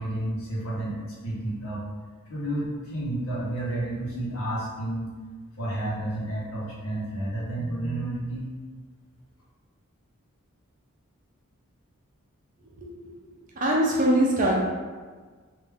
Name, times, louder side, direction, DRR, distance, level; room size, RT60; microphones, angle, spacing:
voice 1, 0.0-1.8 2.3-5.1 5.6-8.5, right 1 dB, 80° left, -5 dB, 1.0 m, -31 dB
voice 2, 12.8-13.1 13.6-14.6, right 1 dB, 35° right, -3 dB, 0.6 m, -23 dB
3.4 x 2.6 x 3.5 m, 1.4 s
head